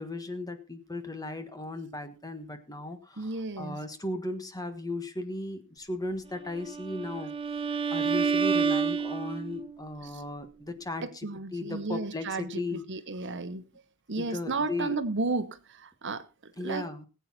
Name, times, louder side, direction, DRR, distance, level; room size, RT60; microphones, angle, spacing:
voice 1, 0.0-7.3 7.9-12.9 14.2-15.0 16.6-17.1, left 2 dB, 15° left, 1.4 m, -36 dB
voice 2, 3.2-3.8 10.0-10.2 11.0-13.6 14.1-16.9, right 3 dB, 55° right, 1.0 m, -33 dB
Bowed string instrument, 6.6-9.7, right 5 dB, 25° right, 0.7 m, -28 dB
19.5 x 8.2 x 4.2 m
head